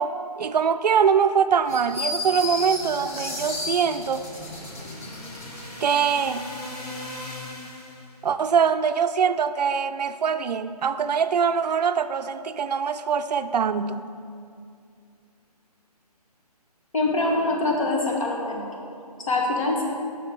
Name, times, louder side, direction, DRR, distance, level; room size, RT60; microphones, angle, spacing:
voice 1, 0.0-4.3 5.8-6.5 8.2-14.1, right 6 dB, 80° right, 11 dB, 0.4 m, -23 dB
sound 1, 1.7-5.7, left 2 dB, 20° left, 0.7 m, -33 dB
sound 2, 3.4-8.2, left 1 dB, 70° left, 2.0 m, -40 dB
voice 2, 16.9-18.7 19.2-19.8, left 2 dB, 55° left, -1 dB, 1.5 m, -24 dB
6.0 x 5.4 x 6.0 m, 2.4 s
hypercardioid pair, 160°, 20 cm